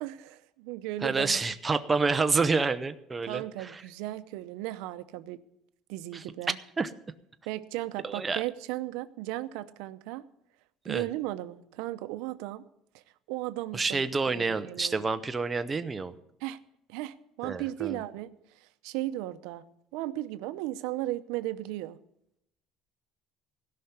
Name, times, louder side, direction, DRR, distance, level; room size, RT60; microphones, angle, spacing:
voice 1, 0.0-1.4 3.3-5.4 5.9-6.6 7.5-10.3 10.8-12.6 12.9-13.0 13.3-14.1 14.3-15.1 16.4-16.6 16.9-19.6 19.9-22.0, right 15 dB, 85° right, 12 dB, 0.7 m, -36 dB
voice 2, 1.0-3.8 6.1-6.2 6.8-6.9 8.0-8.4 10.9-11.0 13.7-16.1 17.4-18.0, right 4 dB, 15° right, 9 dB, 0.6 m, -28 dB
16.5 x 5.8 x 9.5 m, 0.80 s
cardioid pair, 155°, 0 cm